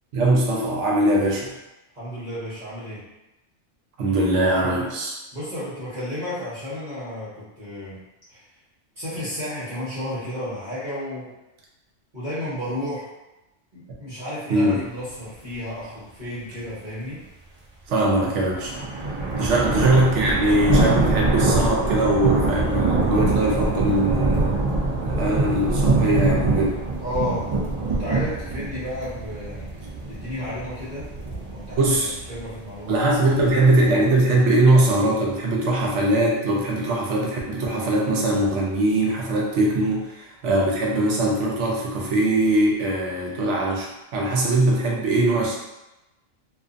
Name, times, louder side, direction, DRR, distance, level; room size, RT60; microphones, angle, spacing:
voice 1, 0.1-1.5 4.0-5.1 14.5-14.8 17.9-18.7 19.4-24.6 25.0-26.8 31.8-32.1 32.9-45.6, right 1 dB, 80° right, -2 dB, 1.0 m, -21 dB
voice 2, 1.9-3.0 5.3-8.0 8.3-8.4 9.0-11.3 12.1-13.1 13.7-17.2 19.6-19.8 27.0-31.1 31.5-33.7, left 1 dB, 45° right, -11 dB, 1.1 m, -32 dB
sound 1, 18.3-34.2, right 3 dB, 60° right, 0.4 m, -24 dB
2.5 x 2.4 x 2.4 m, 0.99 s
omnidirectional pair, 1.2 m